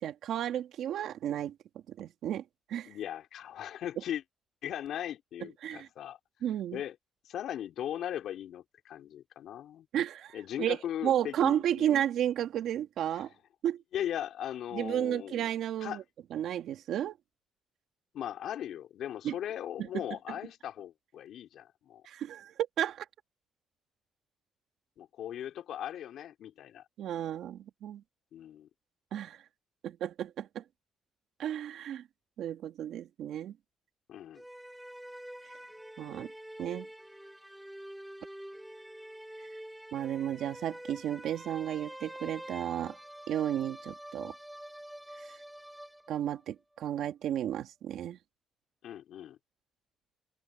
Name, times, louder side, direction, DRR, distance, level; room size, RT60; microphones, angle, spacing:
voice 1, 0.0-1.5 1.9-2.4 2.7-2.9 5.6-5.9 6.4-6.8 9.9-10.8 11.0-13.3 13.6-13.8 14.7-16.0 16.3-17.2 19.2-19.3 19.8-20.0 22.1-23.1 27.0-28.0 29.1-29.4 29.8-30.6 31.4-32.0 32.4-33.5 36.0-36.3 36.6-36.9 39.4-39.5 39.9-42.9 43.3-44.3 46.1-48.2, right 10 dB, 75° right, 2.3 m, -33 dB
voice 2, 2.9-4.2 4.6-6.2 6.7-7.0 7.2-9.9 10.3-12.0 13.1-13.2 13.9-15.5 15.8-16.0 18.1-22.0 25.0-26.8 28.3-28.7 34.1-34.4 48.8-49.4, left 11 dB, 75° left, 3.9 m, -38 dB
sound 1, 34.3-46.4, right 1 dB, 5° right, 3.5 m, -47 dB
open air
cardioid pair, 90°, 0 cm